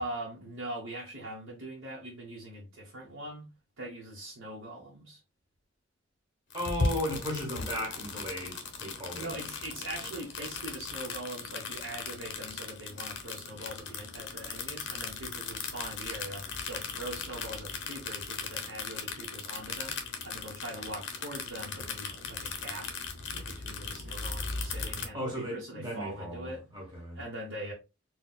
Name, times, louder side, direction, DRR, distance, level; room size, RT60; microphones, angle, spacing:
voice 1, 0.0-3.5 3.8-5.2 7.1-7.2 9.2-22.9 23.3-26.6 27.1-27.7, right 1 dB, 85° right, 1.0 m, -42 dB
sound 1, 6.5-25.1, left 4 dB, 60° left, 0.7 m, -38 dB
voice 2, 6.5-9.4 25.1-27.2, equal, 20° right, 1.3 m, -36 dB
4.1 x 2.3 x 2.2 m
head